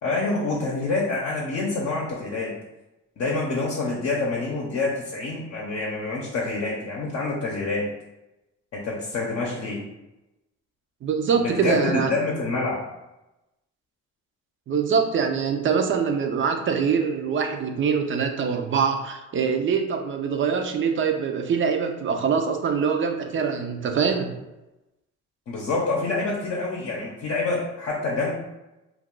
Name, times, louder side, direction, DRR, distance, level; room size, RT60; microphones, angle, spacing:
voice 1, 0.0-2.5 3.2-7.9 8.7-9.8 11.4-12.9 25.5-28.3, left 3 dB, 50° left, -3 dB, 0.7 m, -27 dB
voice 2, 11.0-12.1 14.7-24.3, right 6 dB, 40° right, 5 dB, 0.4 m, -24 dB
2.3 x 2.3 x 3.6 m, 0.99 s
cardioid pair, 90°, 30 cm